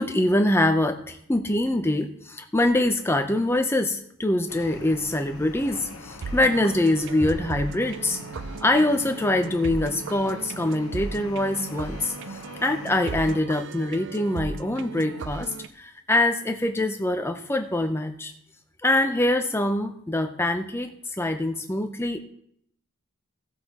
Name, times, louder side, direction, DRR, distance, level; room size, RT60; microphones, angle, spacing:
voice 1, 0.0-8.2 8.6-18.3 18.8-22.2, left 1 dB, 10° left, 6 dB, 0.5 m, -24 dB
sound 1, 4.5-13.4, left 3 dB, 70° left, 1.0 m, -44 dB
sound 2, 6.2-15.7, right 4 dB, 55° right, 0.4 m, -36 dB
sound 3, 7.2-8.6, equal, 35° right, 3.4 m, -38 dB
16.5 x 8.3 x 2.9 m, 0.70 s
head